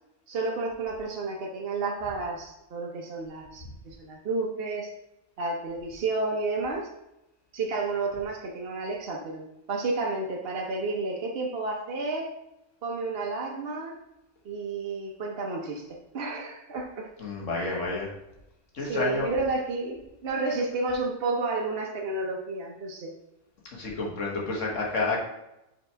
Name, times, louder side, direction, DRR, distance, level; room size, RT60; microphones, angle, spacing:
voice 1, 0.3-4.9 5.4-6.9 7.5-12.3 12.8-14.0 14.4-17.1 17.6-17.9 18.8-23.1, right 3 dB, 55° right, 0 dB, 1.0 m, -31 dB
voice 2, 17.2-18.1 18.7-19.3 23.7-25.2, left 3 dB, 75° left, -2 dB, 1.7 m, -30 dB
5.6 x 4.0 x 4.5 m, 0.89 s
omnidirectional pair, 1.3 m